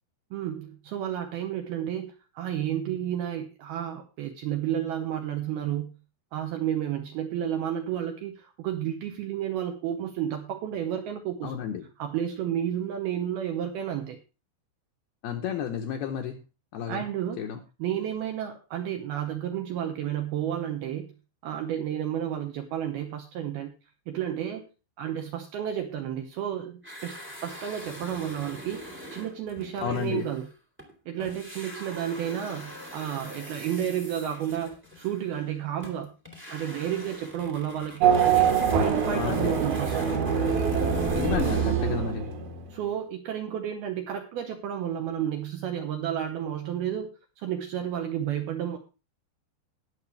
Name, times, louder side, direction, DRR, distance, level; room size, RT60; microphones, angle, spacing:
voice 1, 0.3-5.9 6.3-11.6 12.0-14.2 16.9-17.5 17.8-21.1 21.4-23.7 24.1-24.6 25.0-30.5 31.1-36.1 36.5-39.9 42.7-48.8, right 10 dB, 75° right, 5 dB, 2.4 m, -31 dB
voice 2, 11.4-11.9 15.2-16.4 16.7-17.1 17.4-17.6 29.8-30.3 39.1-39.5 41.1-42.3, left 8 dB, 75° left, 4 dB, 2.4 m, -31 dB
sound 1, 26.8-30.9 31.2-42.0, equal, 10° right, 0.6 m, -43 dB
Race car auto racing / Accelerating revving vroom, 38.0-42.7, right 7 dB, 60° right, 3.2 m, -24 dB
19.5 x 6.8 x 3.3 m, 0.31 s
omnidirectional pair, 5.6 m